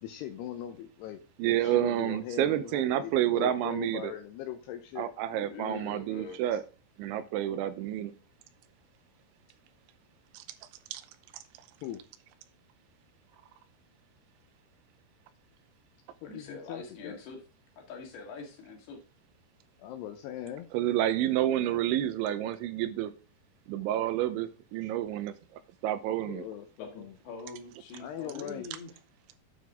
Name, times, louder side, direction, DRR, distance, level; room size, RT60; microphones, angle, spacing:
voice 1, 0.0-5.1 11.8-12.0 16.2-17.2 19.8-20.7 21.4-21.8 24.8-24.9 26.3-27.1 28.0-28.6, left 10 dB, 80° left, 7 dB, 2.5 m, -40 dB
voice 2, 1.4-4.1 5.0-6.6 7.0-8.1 10.3-10.4 10.9-11.0 20.7-23.1 23.7-25.3 25.8-26.5, right 12 dB, 85° right, 11 dB, 3.1 m, -29 dB
voice 3, 5.3-6.4 16.2-17.4 17.8-19.0 26.8-28.9, left 4 dB, 60° left, 1 dB, 3.7 m, -44 dB
9.4 x 6.0 x 3.6 m, 0.35 s
omnidirectional pair, 5.4 m